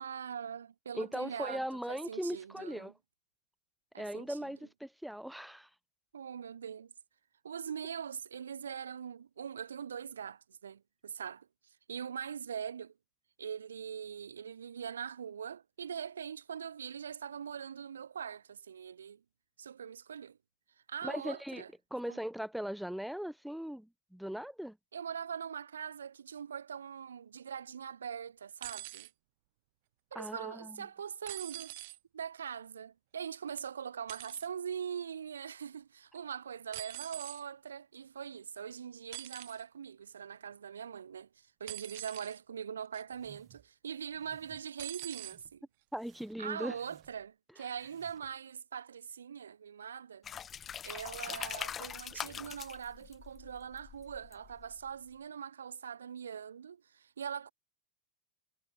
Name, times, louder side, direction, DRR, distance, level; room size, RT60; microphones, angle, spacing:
voice 1, 0.0-2.9 3.9-4.4 6.1-6.9 7.4-12.9 13.4-19.2 19.6-20.4 20.9-21.7 22.1-22.2 24.9-29.1 30.1-31.7 32.1-45.6 46.4-50.3 50.8-57.5, right 7 dB, 70° right, 1.8 m, -42 dB
voice 2, 0.9-2.9 4.0-5.7 21.0-21.6 21.9-24.8 30.1-30.8 45.9-46.7, equal, ahead, 0.6 m, -39 dB
sound 1, 28.6-29.1 31.3-32.0 34.1-34.5 36.7-37.4 39.1-39.6 41.7-42.4 42.9-43.3 44.8-45.4 46.4-46.5, right 20 dB, 50° right, 2.8 m, -44 dB
sound 2, 43.1-43.7 44.1-44.6 45.1-45.6 45.9-47.3 47.7-48.4, right 15 dB, 35° right, 7.6 m, -62 dB
sound 3, 50.2-54.9, left 8 dB, 25° left, 3.4 m, -43 dB
figure-of-eight pair, 90°, 0 cm